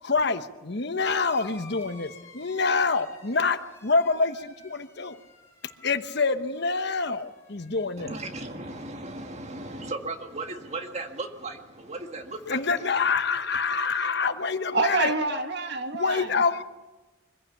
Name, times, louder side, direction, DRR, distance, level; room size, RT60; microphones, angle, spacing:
voice 1, 0.0-5.2 5.8-8.1 12.5-15.1 15.9-16.6, left 4 dB, 55° left, 10 dB, 1.0 m, -26 dB
sound 1, 1.0-10.0 10.3-11.1 12.2-12.3, left 2 dB, 15° left, 4.3 m, -51 dB
voice 2, 8.0-12.8, right 2 dB, 35° right, 5 dB, 1.8 m, -36 dB
voice 3, 14.7-16.3, right 3 dB, 55° right, 6 dB, 1.9 m, -27 dB
24.0 x 15.5 x 8.4 m, 1.2 s
head